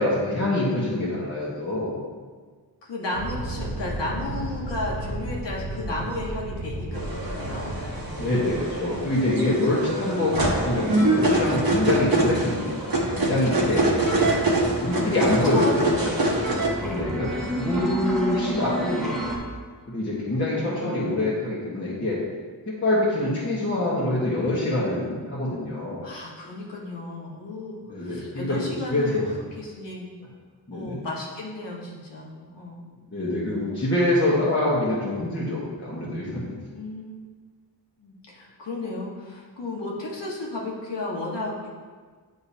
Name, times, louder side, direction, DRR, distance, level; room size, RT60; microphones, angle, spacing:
voice 1, 0.0-2.0 8.2-12.6 13.1-13.8 14.8-15.8 16.8-17.3 17.6-19.2 19.9-22.2 22.7-26.1 27.9-29.3 30.7-31.0 33.1-36.5, left 1 dB, 25° left, -9 dB, 1.2 m, -25 dB
voice 2, 2.8-8.4 13.7-14.2 15.4-16.1 16.7-17.1 20.5-21.2 26.0-30.1 30.7-32.9 36.7-37.2 38.0-41.7, left 2 dB, 80° left, -4 dB, 1.5 m, -34 dB
sound 1, 3.1-9.6, right 2 dB, 80° right, 0.9 m, -34 dB
sound 2, 6.9-16.7, right 2 dB, 55° right, 1.1 m, -25 dB
sound 3, 12.6-19.4, right 1 dB, ahead, 0.9 m, -32 dB
9.7 x 3.8 x 2.8 m, 1.5 s
wide cardioid pair, 125°, 42 cm